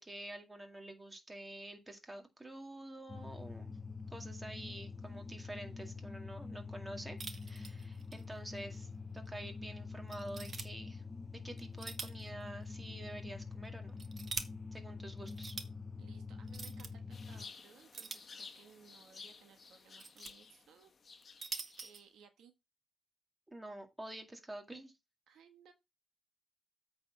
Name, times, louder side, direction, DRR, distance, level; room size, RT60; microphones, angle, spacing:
voice 1, 0.0-3.7 4.1-7.2 7.4-8.9 9.1-11.0 11.3-14.0 14.7-15.6 23.5-24.9, right 1 dB, 15° right, 2.2 m, -48 dB
sound 1, 3.1-17.5, left 4 dB, 20° left, 0.7 m, -46 dB
sound 2, 7.2-8.2 8.6-8.7 9.3-9.4 10.1-10.7 11.6-12.3 12.6-12.7 13.7-14.5 15.3-15.7 16.5-16.9 17.9-18.7 19.7-20.3 21.1-22.0, right 5 dB, 40° right, 1.2 m, -44 dB
voice 2, 16.0-20.9 21.3-21.4 21.8-22.5 25.3-25.7, right 7 dB, 75° right, 1.4 m, -61 dB
sound 3, 17.1-21.9, left 5 dB, 40° left, 1.3 m, -54 dB
8.4 x 4.2 x 5.9 m
cardioid pair, 90°, 0 cm